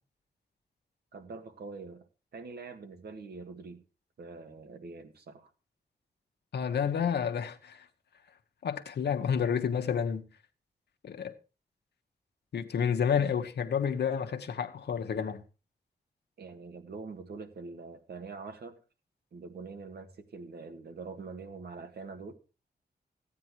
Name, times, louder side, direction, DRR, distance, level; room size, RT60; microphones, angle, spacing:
voice 1, 1.1-3.8 4.2-5.5 16.4-18.8 19.3-22.3, right 4 dB, 75° right, 1.7 m, -44 dB
voice 2, 6.5-7.8 8.6-10.2 11.0-11.3 12.5-15.4, left 7 dB, 85° left, 1.1 m, -30 dB
14.0 x 9.4 x 4.6 m
wide cardioid pair, 100°, 17 cm